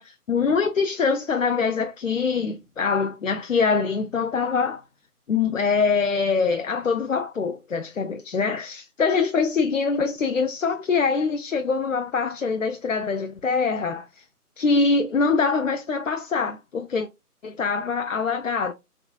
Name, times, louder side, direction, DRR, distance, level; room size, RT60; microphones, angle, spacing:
voice 1, 0.0-4.8 5.3-14.2 14.6-17.1 17.4-18.7, left 5 dB, 60° left, 0.5 m, -24 dB
3.7 x 3.4 x 2.2 m
figure-of-eight pair, 160°, 46 cm